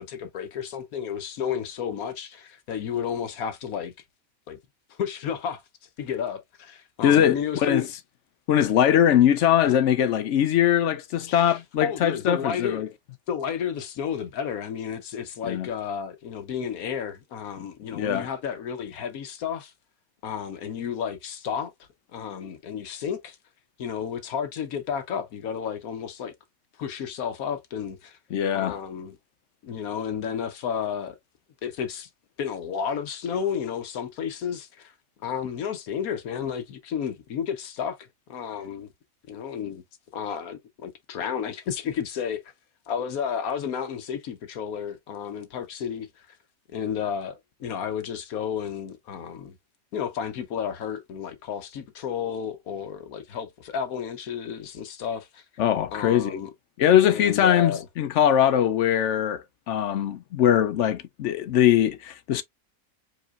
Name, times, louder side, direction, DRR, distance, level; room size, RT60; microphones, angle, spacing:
voice 1, 0.0-3.9 4.5-4.6 4.9-5.6 6.0-7.9 11.3-12.9 13.3-19.7 20.2-21.7 22.1-23.4 23.8-26.3 26.8-28.2 28.5-29.2 29.6-31.2 31.6-32.1 32.4-34.9 35.2-38.9 39.3-39.8 40.1-42.4 42.9-46.4 46.7-49.6 49.9-55.4 55.9-56.5 57.1-57.8, left 7 dB, 85° left, 1.3 m, -32 dB
voice 2, 7.0-7.8 8.5-12.9 15.5-15.7 17.9-18.3 28.3-28.8 55.6-56.4 56.8-62.4, left 10 dB, 65° left, 0.8 m, -21 dB
5.0 x 3.7 x 2.4 m
omnidirectional pair, 1.5 m